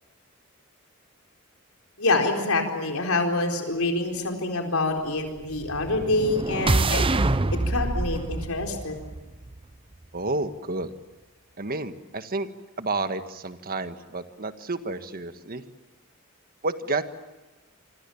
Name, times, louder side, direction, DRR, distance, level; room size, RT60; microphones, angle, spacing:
voice 1, 2.0-7.0 7.7-8.9, left 2 dB, 85° left, 3 dB, 4.4 m, -26 dB
sound 1, 5.5-9.7, right 2 dB, 25° right, 0.8 m, -26 dB
voice 2, 10.1-10.9 11.6-12.5 12.8-15.6 16.6-17.0, right 3 dB, 45° right, 9 dB, 1.6 m, -30 dB
27.0 x 25.0 x 7.2 m, 1.2 s
head